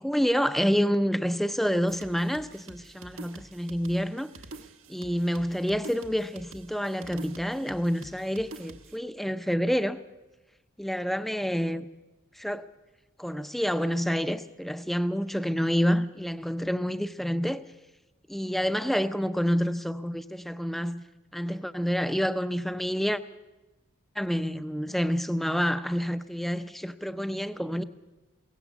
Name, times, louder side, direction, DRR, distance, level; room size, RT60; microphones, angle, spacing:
voice 1, 0.0-4.3 4.9-10.0 10.8-11.9 12.3-12.7 13.2-17.6 18.3-21.0 21.3-23.2 24.2-27.8, equal, ahead, 0.6 m, -28 dB
sound 1, 1.9-9.0, right 3 dB, 75° right, 1.3 m, -47 dB
22.5 x 17.5 x 7.1 m
head